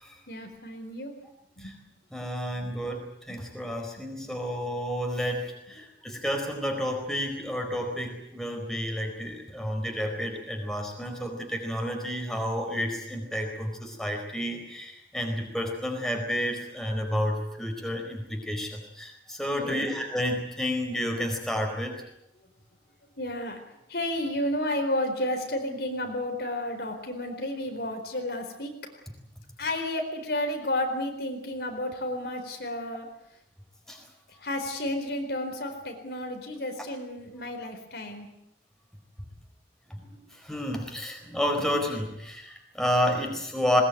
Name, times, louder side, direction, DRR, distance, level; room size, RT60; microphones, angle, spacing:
voice 1, 0.3-1.1 1.6-1.7 19.5-19.9 23.2-23.6 23.9-28.7 29.6-33.1 34.4-38.3, left 1 dB, 65° left, 5 dB, 4.4 m, -32 dB
voice 2, 2.1-21.9 33.9-34.0 39.9-43.8, equal, 5° left, 2 dB, 4.6 m, -30 dB
21.0 x 21.0 x 9.2 m, 0.81 s
head